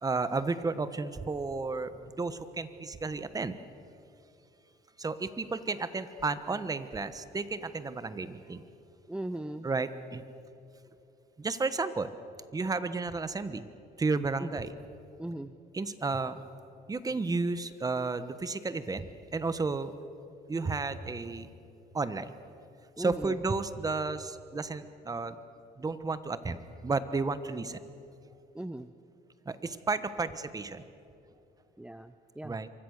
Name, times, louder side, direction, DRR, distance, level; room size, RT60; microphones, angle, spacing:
voice 1, 0.0-1.9 2.2-3.5 5.0-8.6 9.6-10.2 11.4-12.1 12.5-13.6 14.0-14.7 15.7-16.4 16.9-19.1 19.3-19.9 20.5-21.5 21.9-22.3 23.0-25.4 25.8-26.6 26.8-27.8 29.5-30.8 32.4-32.7, right 3 dB, 20° right, 12 dB, 1.3 m, -32 dB
voice 2, 9.1-9.7 14.4-14.6 15.2-15.5 23.0-23.4 28.5-28.9 31.8-32.6, right 1 dB, 5° right, 10 dB, 0.6 m, -39 dB
27.0 x 24.0 x 6.7 m, 2.7 s
cardioid pair, 110°, 17 cm